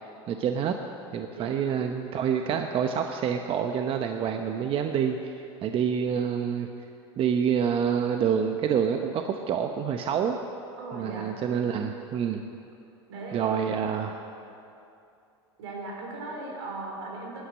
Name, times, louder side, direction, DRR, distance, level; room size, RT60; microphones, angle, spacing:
voice 1, 0.3-0.7 1.1-6.7 7.2-10.4 10.9-12.4 13.3-14.2, right 7 dB, 40° right, 5 dB, 0.9 m, -27 dB
voice 2, 10.8-11.3 13.1-14.1 15.6-17.4, right 3 dB, 75° right, -1 dB, 4.5 m, -38 dB
16.5 x 11.5 x 6.4 m, 2.7 s
hypercardioid pair, 100°, 14 cm